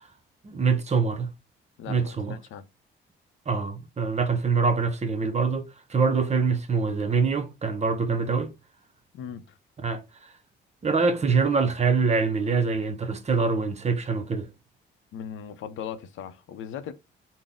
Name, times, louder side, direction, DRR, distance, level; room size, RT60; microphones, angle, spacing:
voice 1, 0.4-1.3 1.9-2.4 3.5-8.5 9.8-10.3 10.8-14.5, right 5 dB, 35° right, 0.8 m, -25 dB
voice 2, 1.8-2.6 9.1-9.6 15.1-16.9, left 8 dB, 75° left, 0.6 m, -38 dB
4.0 x 2.1 x 3.6 m
cardioid pair, 90°, 20 cm